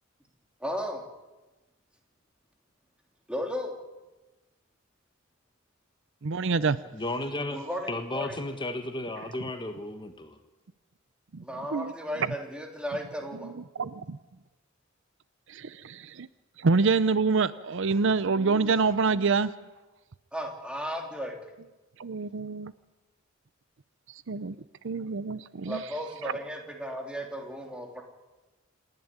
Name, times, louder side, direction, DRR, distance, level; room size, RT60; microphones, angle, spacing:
voice 1, 0.6-1.1 3.3-3.7 7.5-8.4 11.4-13.5 20.3-21.4 25.7-28.0, equal, 5° right, 2 dB, 3.0 m, -35 dB
voice 2, 6.2-6.8 11.3-11.4 11.7-11.9 13.4-13.5 13.8-14.2 15.5-16.3 16.6-19.5 22.0-22.7 24.3-24.6 24.8-25.8 26.2-26.4, right 4 dB, 65° right, 16 dB, 0.6 m, -26 dB
voice 3, 6.9-7.6 7.9-10.4, left 2 dB, 25° left, 7 dB, 1.4 m, -34 dB
28.0 x 11.0 x 9.7 m, 1.1 s
head